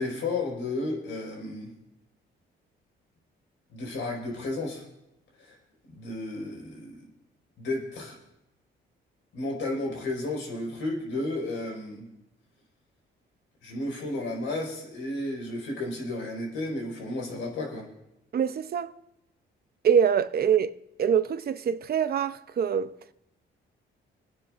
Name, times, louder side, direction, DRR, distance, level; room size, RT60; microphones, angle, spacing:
voice 1, 0.0-1.7 3.7-4.8 5.4-5.5 5.9-7.0 7.6-8.2 9.3-12.1 13.6-17.9, left 2 dB, 80° left, 4.8 m, -33 dB
voice 2, 18.3-18.9 19.8-20.7 21.0-22.9, right 7 dB, 50° right, 0.6 m, -24 dB
29.5 x 10.0 x 2.5 m
cardioid pair, 90°, 20 cm